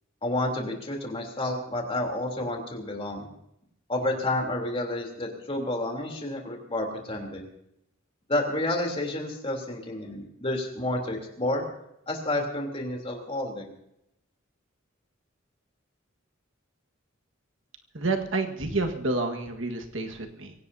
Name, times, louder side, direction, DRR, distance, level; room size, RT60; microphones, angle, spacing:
voice 1, 0.2-3.3 3.9-7.5 8.3-11.6 12.1-13.7, left 1 dB, 30° left, 1 dB, 3.3 m, -30 dB
voice 2, 17.9-20.5, right 2 dB, 70° right, 4 dB, 1.6 m, -29 dB
24.0 x 17.5 x 2.8 m, 0.80 s
head